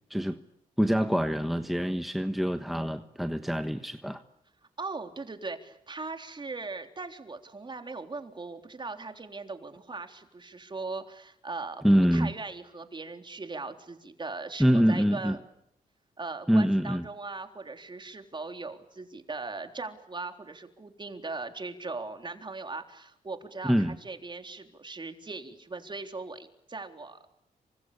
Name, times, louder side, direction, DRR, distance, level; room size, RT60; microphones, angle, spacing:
voice 1, 0.8-4.2 11.8-12.3 14.6-15.4 16.5-17.0 23.6-24.0, equal, ahead, 8 dB, 1.3 m, -25 dB
voice 2, 4.8-15.4 16.2-27.3, right 3 dB, 30° right, 6 dB, 3.7 m, -39 dB
28.0 x 25.0 x 8.5 m, 0.76 s
cardioid pair, 80°, 15 cm